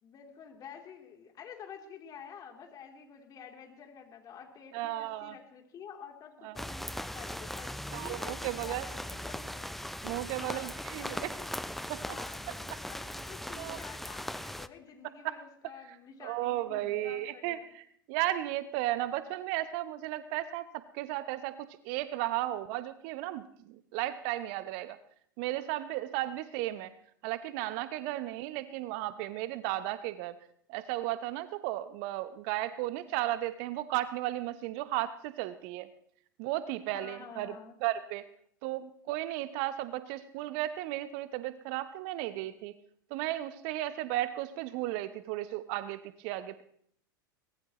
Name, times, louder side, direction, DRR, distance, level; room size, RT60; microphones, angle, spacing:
voice 1, 0.0-9.7 10.4-11.5 12.0-17.7 36.9-37.8, left 7 dB, 35° left, 3 dB, 3.1 m, -49 dB
voice 2, 4.7-5.3 6.4-6.6 7.9-8.9 10.0-11.3 11.9-12.0 13.6-13.8 15.2-15.4 16.2-25.0 25.4-26.9 27.2-30.4 30.7-35.9 36.4-37.5 37.8-38.3 38.6-42.8 43.1-46.6, right 15 dB, 50° right, 13 dB, 0.9 m, -34 dB
sound 1, 6.6-14.7, left 1 dB, ahead, 0.5 m, -39 dB
23.5 x 19.0 x 3.0 m, 0.64 s
figure-of-eight pair, 85°, 11 cm